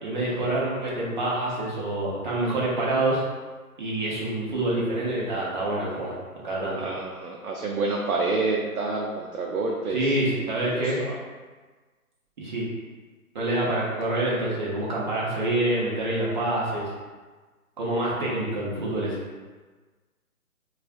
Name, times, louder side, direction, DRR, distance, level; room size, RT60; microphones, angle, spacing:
voice 1, 0.0-3.2 3.8-6.1 6.4-6.8 9.9-11.0 12.4-12.6 13.3-16.9 17.8-19.2, right 1 dB, 35° right, -5 dB, 0.8 m, -26 dB
voice 2, 6.8-11.2, right 3 dB, 70° right, -2 dB, 0.6 m, -29 dB
4.2 x 2.3 x 2.5 m, 1.4 s
figure-of-eight pair, 140°, 45 cm